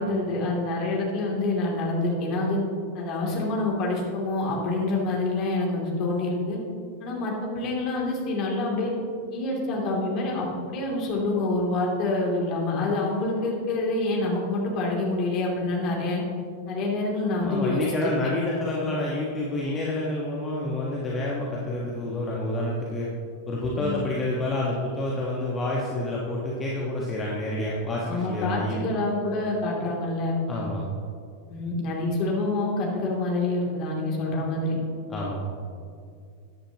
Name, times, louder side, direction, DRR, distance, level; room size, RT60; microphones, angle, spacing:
voice 1, 0.0-2.6 2.9-6.6 7.0-8.9 9.3-16.2 16.7-18.2 23.8-24.0 28.0-30.4 31.5-34.8, left 2 dB, 40° left, -2 dB, 2.9 m, -27 dB
voice 2, 17.4-23.1 23.5-28.9 30.5-30.9 35.1-35.5, left 1 dB, 20° left, -4 dB, 1.5 m, -28 dB
14.0 x 10.0 x 3.0 m, 2.3 s
figure-of-eight pair, 90°, 0 cm